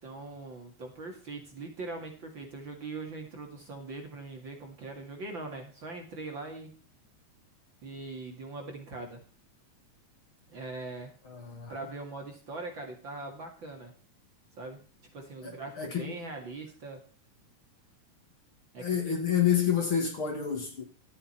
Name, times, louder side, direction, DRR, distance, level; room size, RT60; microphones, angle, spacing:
voice 1, 0.0-6.7 7.8-9.2 10.5-11.1 11.7-13.9 14.5-14.8 15.1-17.0 18.7-19.1, right 3 dB, 40° right, 2.5 m, -41 dB
voice 2, 11.2-11.7 15.4-16.2 18.8-20.8, left 8 dB, 45° left, 2.8 m, -29 dB
13.0 x 8.7 x 4.4 m
omnidirectional pair, 3.7 m